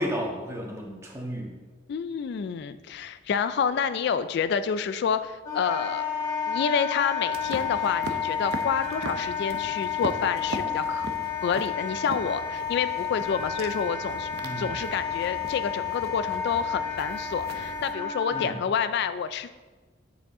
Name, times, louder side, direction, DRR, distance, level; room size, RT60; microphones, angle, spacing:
voice 1, 0.0-1.5 14.4-14.7 18.3-18.6, equal, 15° right, -1 dB, 1.4 m, -32 dB
voice 2, 1.9-6.1 6.5-11.1 11.4-14.3 14.6-19.5, left 6 dB, 60° left, 12 dB, 0.3 m, -28 dB
Wind instrument woodwind instrument, 5.4-18.5, left 7 dB, 20° left, 2.6 m, -31 dB
sound 1, 7.3-17.9, right 2 dB, 60° right, 0.7 m, -40 dB
8.5 x 7.0 x 3.7 m, 1.3 s
head